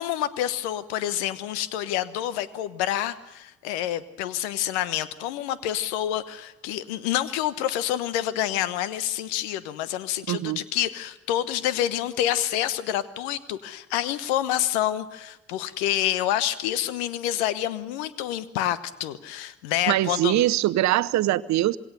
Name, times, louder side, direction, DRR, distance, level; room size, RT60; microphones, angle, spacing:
voice 1, 0.0-20.4, left 12 dB, 75° left, 16 dB, 1.2 m, -28 dB
voice 2, 10.3-10.6 19.9-21.8, right 15 dB, 55° right, 15 dB, 0.8 m, -22 dB
26.0 x 21.5 x 6.8 m, 0.97 s
figure-of-eight pair, 45°, 33 cm